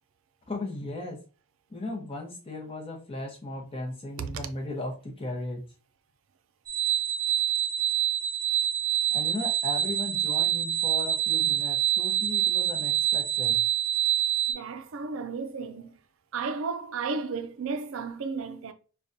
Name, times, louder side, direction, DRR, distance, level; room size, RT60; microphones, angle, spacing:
voice 1, 0.5-1.2 1.7-5.6 9.1-13.6, left 2 dB, 25° left, 0.8 m, -36 dB
sound 1, 6.7-14.5, right 10 dB, 20° right, 1.1 m, -26 dB
voice 2, 14.5-16.0 16.3-18.7, right 4 dB, 65° right, 0.4 m, -33 dB
5.1 x 2.3 x 2.6 m
head